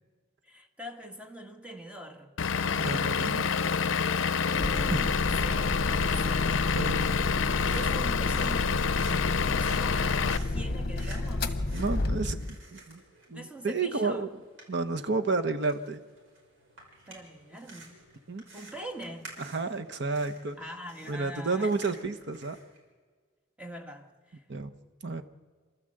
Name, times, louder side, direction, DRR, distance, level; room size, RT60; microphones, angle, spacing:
voice 1, 0.4-2.4 4.5-6.6 7.7-11.6 13.3-14.3 17.1-18.0 18.5-19.4 20.6-21.8 23.6-24.4, right 1 dB, 5° right, 1.5 m, -43 dB
Vehicle / Engine, 2.4-10.4, left 6 dB, 70° left, 0.5 m, -28 dB
voice 2, 2.7-3.5 6.7-7.1 11.7-12.4 12.7-13.0 13.3-14.3 14.7-16.0 18.3-18.4 19.4-20.6 21.1-22.6 24.5-24.7 25.0-25.2, right 3 dB, 60° right, 1.1 m, -31 dB
sound 1, 4.6-12.6, left 2 dB, 50° left, 0.9 m, -31 dB
sound 2, 7.2-22.8, right 2 dB, 80° right, 5.8 m, -52 dB
28.0 x 12.5 x 7.8 m
head